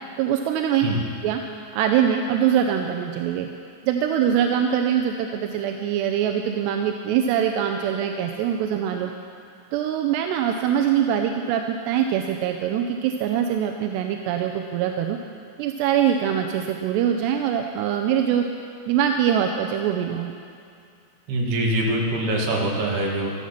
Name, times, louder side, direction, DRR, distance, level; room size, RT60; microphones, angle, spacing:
voice 1, 0.2-0.9 1.2-1.4 1.7-3.5 3.8-9.1 9.7-15.2 15.6-18.5 18.9-20.3, right 9 dB, 90° right, 4 dB, 2.8 m, -23 dB
voice 2, 21.3-23.3, right 1 dB, 70° right, -2 dB, 3.9 m, -24 dB
14.5 x 13.5 x 5.8 m, 2.4 s
omnidirectional pair, 4.8 m